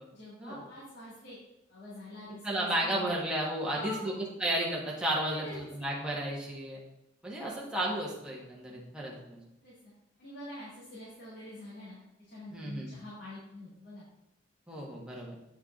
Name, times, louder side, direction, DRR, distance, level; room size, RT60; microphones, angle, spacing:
voice 1, 0.1-1.4 1.7-3.1 3.7-4.0 5.3-5.6 7.4-7.5 9.6-9.7 10.2-12.0 12.3-14.0, left 1 dB, 60° left, -9 dB, 2.4 m, -45 dB
voice 2, 2.4-6.8 7.2-9.4 12.5-12.9 14.7-15.4, right 1 dB, 5° right, -4 dB, 1.5 m, -33 dB
8.7 x 4.7 x 3.8 m, 0.88 s
head